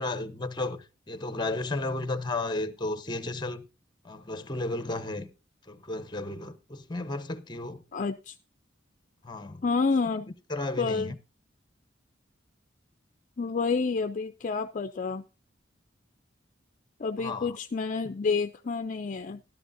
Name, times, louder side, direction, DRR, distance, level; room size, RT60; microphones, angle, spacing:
voice 1, 0.0-3.6 4.0-5.3 5.7-7.8 9.2-9.6 10.5-11.2 17.2-17.6, left 2 dB, 25° left, 0.9 m, -33 dB
voice 2, 7.9-8.3 9.6-10.3 10.8-11.1 13.4-15.2 17.0-19.4, left 4 dB, 45° left, 0.5 m, -29 dB
13.0 x 12.5 x 2.6 m
head